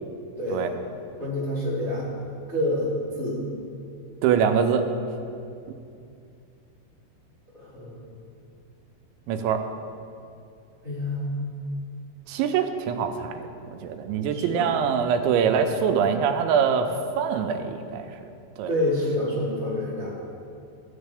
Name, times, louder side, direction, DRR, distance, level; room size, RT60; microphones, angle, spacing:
voice 1, 0.4-0.7 1.2-2.1 2.5-2.9 3.1-3.4 7.6-8.1 10.8-11.4 14.3-14.8 18.7-20.1, left 1 dB, 25° left, -10 dB, 1.5 m, -28 dB
voice 2, 4.2-4.8 5.7-5.8 9.3-9.6 12.3-16.9 17.2-18.1 18.6-18.7, right 7 dB, 90° right, 7 dB, 2.9 m, -24 dB
14.5 x 9.7 x 3.5 m, 2.5 s
omnidirectional pair, 5.2 m